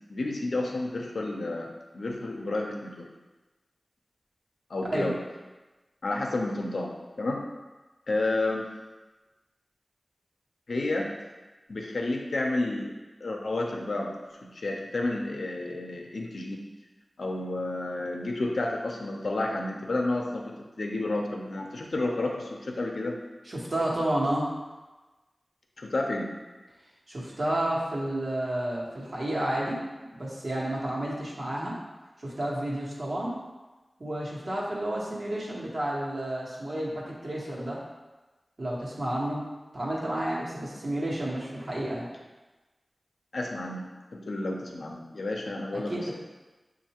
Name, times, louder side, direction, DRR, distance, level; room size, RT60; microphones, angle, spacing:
voice 1, 0.1-3.1 4.7-5.2 6.0-6.9 7.2-7.4 8.1-8.7 10.7-11.1 11.7-12.9 13.2-16.6 17.2-23.1 25.8-26.3 43.3-46.1, left 2 dB, 90° left, 0 dB, 0.6 m, -31 dB
voice 2, 23.4-24.5 27.1-29.8 30.1-31.8 32.2-33.3 34.0-37.8 38.6-39.4 39.7-42.1 45.7-46.1, right 1 dB, 60° right, -5 dB, 1.2 m, -31 dB
6.4 x 2.6 x 2.9 m, 1.2 s
wide cardioid pair, 80°, 0 cm